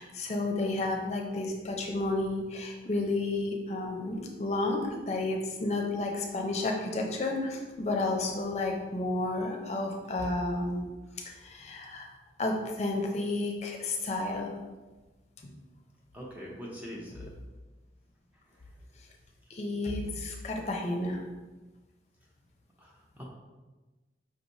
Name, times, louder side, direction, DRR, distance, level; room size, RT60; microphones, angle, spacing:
voice 1, 0.0-10.9 11.2-12.1 12.4-14.5 19.5-21.2, left 2 dB, 40° left, 1 dB, 0.6 m, -31 dB
voice 2, 16.1-17.3 18.5-18.7 22.8-23.2, equal, 10° right, -4 dB, 0.6 m, -43 dB
5.2 x 3.2 x 2.7 m, 1.2 s
head